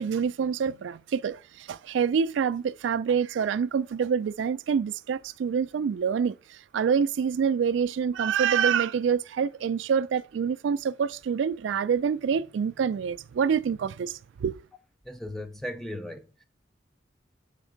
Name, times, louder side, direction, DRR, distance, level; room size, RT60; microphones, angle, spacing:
voice 1, 0.0-14.6, right 7 dB, 90° right, 0.3 m, -26 dB
voice 2, 15.0-16.4, left 1 dB, ahead, 0.6 m, -37 dB
7.3 x 3.4 x 5.0 m
head